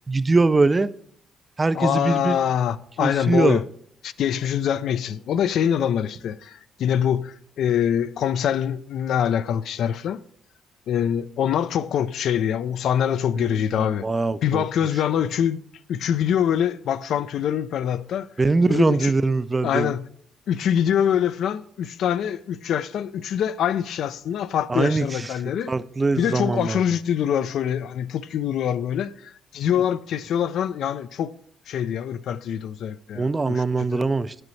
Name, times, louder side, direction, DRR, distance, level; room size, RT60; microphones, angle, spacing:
voice 1, 0.1-0.9 1.6-2.4 3.0-3.6 13.4-14.6 18.4-19.9 24.7-25.3 25.7-26.8 33.1-34.4, right 3 dB, 25° right, 0.3 m, -22 dB
voice 2, 1.7-3.6 4.0-10.2 10.9-14.1 14.4-15.6 15.9-18.3 18.7-19.1 19.6-20.1 20.5-25.7 26.2-31.3 31.7-34.0, left 9 dB, 75° left, 0.3 m, -24 dB
9.3 x 7.6 x 3.1 m
cardioid pair, 90°, 0 cm